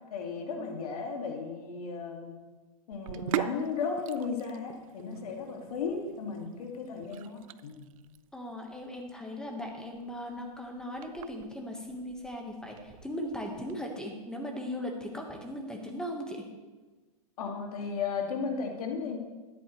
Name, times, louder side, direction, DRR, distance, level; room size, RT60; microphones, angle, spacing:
voice 1, 0.1-2.4 2.9-7.9 17.4-19.2, left 5 dB, 70° left, 2 dB, 2.1 m, -35 dB
Sink (filling or washing), 2.9-13.7, right 13 dB, 60° right, 0.4 m, -42 dB
voice 2, 8.3-16.5, equal, 5° left, 2 dB, 1.3 m, -38 dB
13.5 x 10.5 x 3.1 m, 1.3 s
hypercardioid pair, 145°, 20 cm